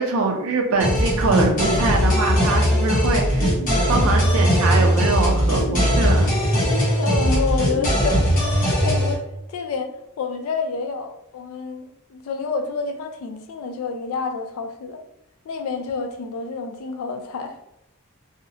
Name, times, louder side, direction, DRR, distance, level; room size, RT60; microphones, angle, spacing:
voice 1, 0.0-3.5 3.9-6.3, right 3 dB, 70° right, 1 dB, 0.4 m, -23 dB
sound 1, 0.8-9.1, equal, 35° left, 0.7 m, -19 dB
voice 2, 7.0-8.3 8.8-15.0 15.5-17.5, left 4 dB, 65° left, 6 dB, 0.3 m, -28 dB
2.7 x 2.0 x 2.7 m, 0.84 s
head